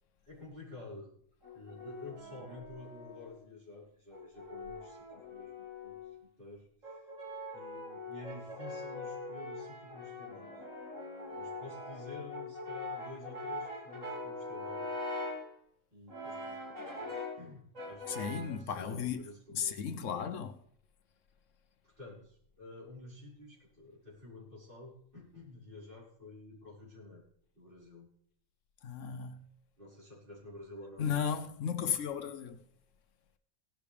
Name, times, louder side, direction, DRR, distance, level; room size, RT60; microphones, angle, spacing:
voice 1, 0.2-1.1 1.5-7.0 7.5-10.6 11.3-15.0 15.9-17.1 17.4-19.8 21.8-27.2 27.6-28.1 29.8-31.1, left 2 dB, 40° right, 5.2 m, -50 dB
Brass instrument, 1.4-3.4 4.1-6.2 6.8-15.5 16.1-17.4 17.8-18.6, left 2 dB, 80° right, 3.9 m, -42 dB
voice 2, 18.1-19.2 19.5-20.5 28.8-29.4 31.0-32.6, left 7 dB, 75° left, 1.2 m, -35 dB
17.0 x 12.0 x 3.4 m
omnidirectional pair, 1.3 m